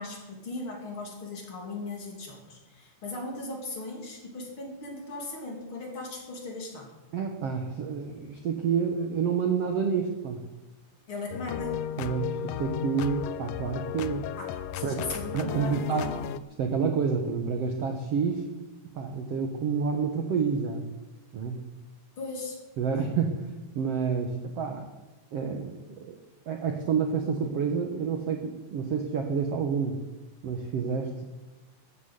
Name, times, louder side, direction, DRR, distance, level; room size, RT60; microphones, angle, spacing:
voice 1, 0.0-6.9 11.1-11.8 14.4-16.3 22.2-22.6, left 2 dB, 35° left, 1 dB, 3.2 m, -38 dB
voice 2, 7.1-10.4 12.0-14.2 14.8-15.1 15.3-16.1 16.6-18.4 18.9-20.8 21.3-21.6 22.8-23.3 23.7-24.9 25.3-26.1 26.5-30.0 30.4-31.2, right 6 dB, 85° right, 4 dB, 1.3 m, -29 dB
sound 1, 11.3-16.4, left 10 dB, 80° left, 2.2 m, -34 dB
13.5 x 9.4 x 8.1 m, 1.1 s
omnidirectional pair, 4.7 m